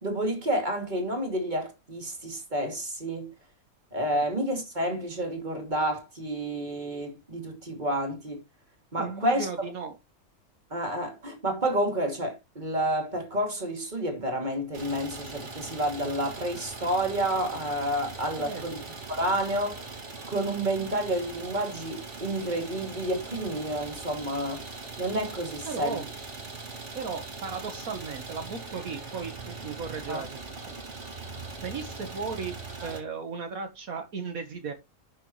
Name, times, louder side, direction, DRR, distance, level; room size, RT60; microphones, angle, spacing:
voice 1, 0.0-3.3 3.9-8.4 8.9-9.5 10.7-18.8 19.1-19.8 20.3-24.6 25.0-26.0 30.1-30.2, right 1 dB, 30° right, 2.8 m, -30 dB
voice 2, 9.0-10.0 18.4-18.6 25.7-26.1 26.9-31.3 31.6-32.6 32.8-34.7, right 5 dB, 70° right, 1.8 m, -36 dB
Idling, 14.7-33.0, right 3 dB, 50° right, 2.6 m, -41 dB
11.0 x 6.7 x 3.1 m
omnidirectional pair, 1.5 m